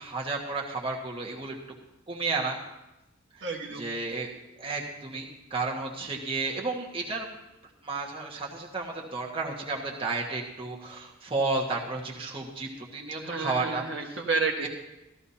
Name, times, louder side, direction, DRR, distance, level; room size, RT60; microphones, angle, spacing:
voice 1, 0.0-1.6 2.1-2.6 3.8-4.3 4.6-7.3 7.8-13.8 14.6-14.7, right 3 dB, 30° right, -2 dB, 1.4 m, -32 dB
voice 2, 3.4-3.9 13.2-14.7, right 4 dB, 65° right, 1 dB, 1.4 m, -30 dB
14.5 x 13.0 x 2.8 m, 0.96 s
head